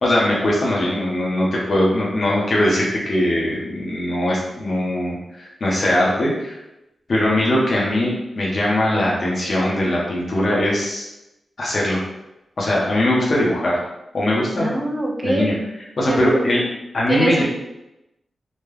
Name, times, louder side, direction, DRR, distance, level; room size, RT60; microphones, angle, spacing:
voice 1, 0.0-6.6 7.1-11.1 11.6-12.0 12.6-13.8 14.1-14.7 15.2-15.5 16.0-16.6 16.9-17.4, left 1 dB, 50° left, -5 dB, 1.3 m, -20 dB
voice 2, 14.5-15.5 16.1-16.7 17.1-17.4, right 1 dB, 20° right, -1 dB, 0.7 m, -23 dB
4.2 x 2.6 x 3.5 m, 0.92 s
wide cardioid pair, 130°, 0 cm